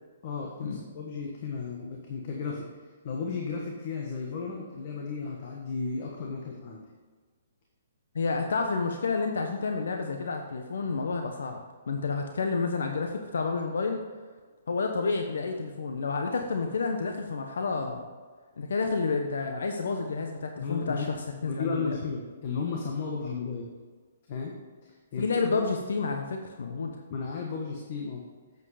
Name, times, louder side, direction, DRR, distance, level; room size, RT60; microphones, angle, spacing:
voice 1, 0.2-6.9 20.6-21.1 21.4-23.7 24.3-24.5 24.8-25.7 27.1-28.2, left 5 dB, 45° left, -1 dB, 1.4 m, -34 dB
voice 2, 8.1-11.6 11.9-14.0 14.7-18.1 18.6-21.2 21.4-22.0 25.2-27.0, left 4 dB, 80° left, 4 dB, 1.0 m, -30 dB
8.1 x 7.8 x 5.0 m, 1.5 s
hypercardioid pair, 155°, 0 cm